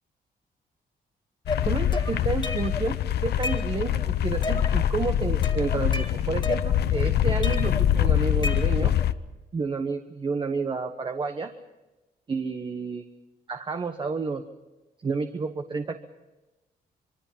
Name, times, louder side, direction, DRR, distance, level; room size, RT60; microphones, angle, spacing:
sound 1, 1.5-9.1, left 11 dB, 80° left, 0.9 m, -24 dB
sound 2, 1.5-2.9 3.2-4.0 4.4-4.9 5.2-7.0 7.4-9.0, left 3 dB, 25° left, 1.9 m, -33 dB
voice 1, 1.6-8.9 9.5-11.5 12.3-13.0 13.5-14.4 15.0-16.0, right 4 dB, 30° right, 7 dB, 1.2 m, -30 dB
25.5 x 24.0 x 5.7 m, 1.1 s
wide cardioid pair, 155°, 17 cm